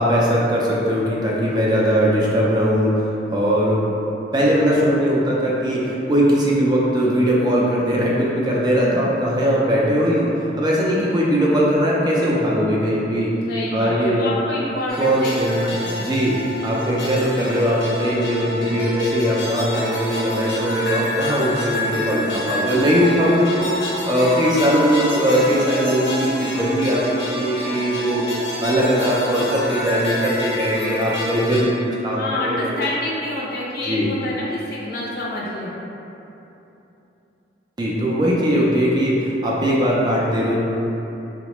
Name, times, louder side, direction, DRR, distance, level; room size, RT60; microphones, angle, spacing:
voice 1, 0.0-3.8 4.3-10.3 10.6-13.3 13.7-14.3 15.0-28.2 28.6-32.8 33.9-34.1 37.8-40.6, equal, 20° right, -5 dB, 0.3 m, -20 dB
voice 2, 13.5-16.1 32.2-35.7, left 1 dB, 55° left, -5 dB, 0.5 m, -28 dB
sound 1, 14.9-31.6, left 1 dB, 80° left, 0.8 m, -28 dB
3.7 x 2.1 x 2.9 m, 3.0 s
head